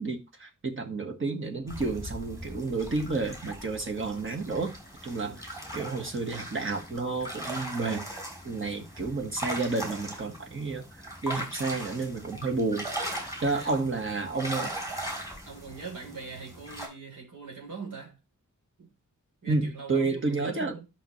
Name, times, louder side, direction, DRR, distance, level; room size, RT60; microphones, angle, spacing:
voice 1, 0.0-4.7 5.0-5.4 5.7-8.1 8.4-10.8 11.2-12.9 13.4-14.7 19.5-20.7, right 3 dB, 40° right, 1.6 m, -30 dB
sound 1, 1.7-16.9, right 1 dB, 10° right, 3.5 m, -39 dB
voice 2, 15.5-18.2 18.8-18.9 19.4-20.8, right 4 dB, 75° right, 3.7 m, -42 dB
11.0 x 6.0 x 3.2 m
wide cardioid pair, 175°, 31 cm